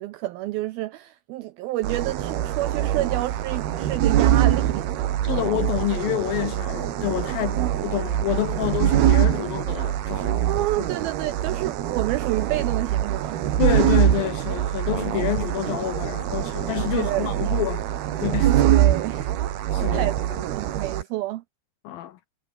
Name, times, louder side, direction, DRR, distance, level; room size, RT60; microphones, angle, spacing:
voice 1, 0.0-5.1 7.3-7.7 10.4-13.6 16.9-17.3 18.5-19.3 19.9-20.1 20.4-21.4, right 17 dB, 85° right, 2.1 m, -29 dB
sound 1, 1.8-21.0, right 11 dB, 65° right, 3.5 m, -24 dB
voice 2, 5.2-10.7 13.6-17.8 18.2-18.5 19.7-20.4 21.8-22.2, left 14 dB, 75° left, 2.3 m, -28 dB
omnidirectional pair, 5.1 m